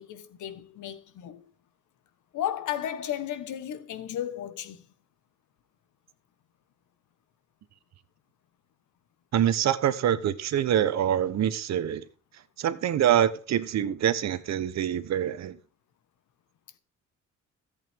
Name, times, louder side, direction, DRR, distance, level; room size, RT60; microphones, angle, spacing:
voice 1, 0.0-1.5 2.3-4.9, left 11 dB, 75° left, 1.4 m, -34 dB
voice 2, 9.3-12.1 12.6-15.6, right 10 dB, 65° right, 1.0 m, -25 dB
14.0 x 8.2 x 3.6 m
cardioid pair, 90°, 30 cm